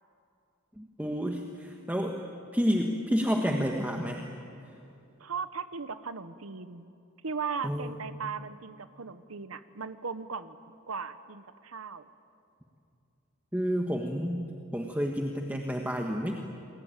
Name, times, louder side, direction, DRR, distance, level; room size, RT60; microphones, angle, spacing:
voice 1, 0.8-2.2 2.5-4.3 7.6-8.0 13.5-14.4 14.7-16.4, equal, 10° right, 2 dB, 1.5 m, -30 dB
voice 2, 5.2-6.9 7.2-10.6 10.9-12.1, right 5 dB, 85° right, 12 dB, 1.0 m, -37 dB
28.5 x 22.0 x 9.0 m, 2.7 s
head